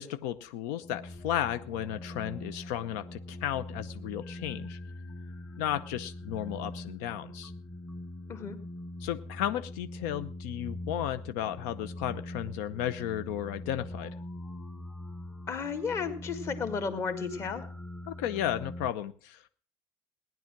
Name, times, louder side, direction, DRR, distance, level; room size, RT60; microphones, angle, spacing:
voice 1, 0.0-4.8 5.6-7.5 9.0-14.1 18.1-19.5, left 11 dB, 85° left, 12 dB, 0.8 m, -34 dB
sound 1, 0.8-18.9, left 1 dB, 10° left, 1.0 m, -42 dB
voice 2, 15.5-17.7, left 5 dB, 35° left, 8 dB, 1.9 m, -33 dB
17.0 x 10.5 x 6.0 m, 0.43 s
cardioid pair, 150°, 9 cm